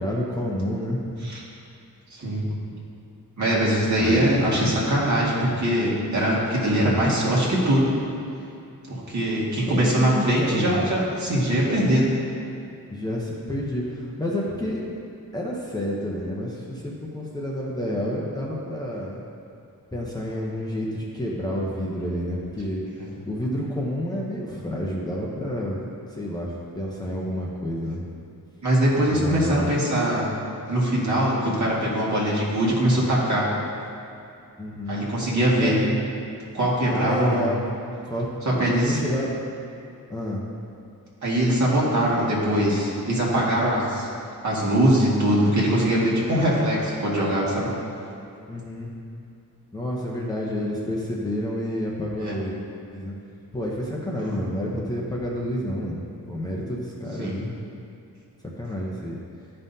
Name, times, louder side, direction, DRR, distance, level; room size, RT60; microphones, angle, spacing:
voice 1, 0.0-1.1 4.0-4.8 6.8-7.1 9.7-10.8 12.9-14.8 15.3-16.8 17.1-19.2 19.9-22.8 23.3-25.8 26.1-28.0 29.1-29.6 34.6-35.0 35.6-36.0 36.9-37.7 38.0-38.3 38.5-39.3 40.1-40.4 48.5-48.9 49.7-52.5 52.9-53.1 53.5-56.0 56.3-57.5 58.6-59.2, left 1 dB, 10° left, -5 dB, 0.7 m, -29 dB
voice 2, 2.1-2.4 3.4-7.9 8.9-12.0 23.0-23.1 27.9-28.0 28.6-30.3 30.7-33.5 34.9-35.7 36.5-37.5 38.5-39.0 41.2-44.1 44.4-47.7 52.2-52.4 54.2-54.4 57.2-57.4, right 1 dB, 50° right, -6 dB, 2.0 m, -22 dB
13.0 x 5.5 x 2.7 m, 2.5 s
wide cardioid pair, 160°, 36 cm